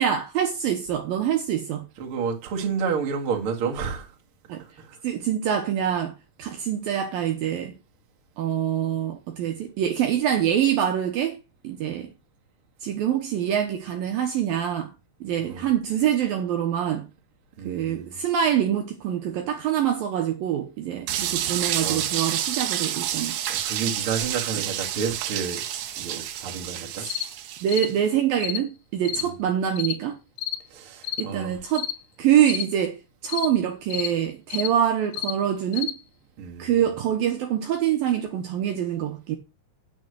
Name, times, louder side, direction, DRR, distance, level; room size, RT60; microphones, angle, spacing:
voice 1, 0.0-1.9 4.5-4.6 5.0-7.7 8.4-11.4 11.6-12.1 12.8-14.9 15.2-17.1 17.7-23.4 27.0-27.1 27.6-30.2 31.2-31.9 32.2-35.9 36.6-39.4, right 10 dB, 70° right, 2.5 m, -25 dB
voice 2, 2.0-4.1 4.6-5.0 15.4-15.7 17.6-18.2 21.8-22.0 23.5-25.6 26.0-27.1 29.2-29.4 30.7-31.6 36.4-36.8, right 6 dB, 40° right, 2.1 m, -30 dB
sound 1, 21.1-27.9, right 11 dB, 85° right, 1.7 m, -29 dB
sound 2, 27.1-27.3 27.7-27.9 28.4-28.6 29.1-29.3 29.8-30.0 30.4-30.6 31.0-31.3 31.8-32.0 32.5-32.7 33.3-33.5 33.9-34.1 34.5-34.7 35.1-35.4 35.7-36.0, left 13 dB, 85° left, 2.9 m, -30 dB
9.3 x 6.4 x 6.3 m
omnidirectional pair, 4.9 m